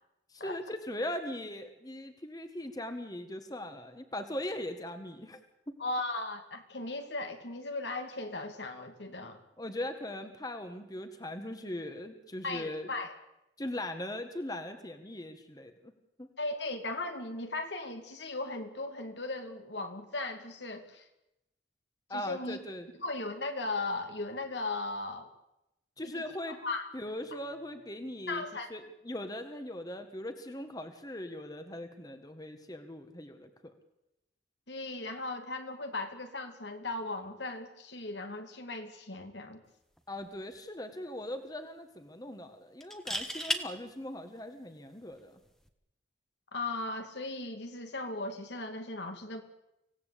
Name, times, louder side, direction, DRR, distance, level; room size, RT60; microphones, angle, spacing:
voice 1, 0.3-5.4 5.7-5.8 9.6-12.9 13.6-15.9 16.2-16.3 22.1-22.9 26.0-26.6 26.9-33.7 40.1-45.4, left 1 dB, 20° left, 7 dB, 1.6 m, -40 dB
voice 2, 5.8-9.4 12.4-13.1 16.4-21.1 22.1-22.6 23.0-25.3 26.1-26.9 28.3-28.7 34.7-39.6 46.5-49.4, left 2 dB, 70° left, 6 dB, 2.5 m, -37 dB
sound 1, 40.0-40.2 40.5-40.6 42.8-43.6 45.5-45.7, equal, 5° left, 1.4 m, -33 dB
25.0 x 17.0 x 8.5 m, 0.89 s
head